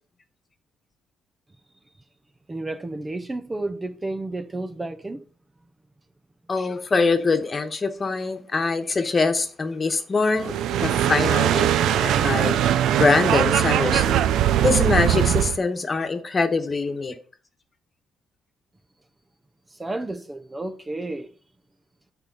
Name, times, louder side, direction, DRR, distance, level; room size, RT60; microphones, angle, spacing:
voice 1, 2.5-5.2 19.8-21.3, right 2 dB, 20° right, 0.7 m, -31 dB
voice 2, 6.5-12.6 12.9-14.2 14.6-17.1, left 4 dB, 35° left, 1.3 m, -23 dB
sound 1, 10.4-15.6, right 11 dB, 85° right, 0.5 m, -21 dB
9.1 x 4.4 x 5.6 m
cardioid pair, 90°, 0 cm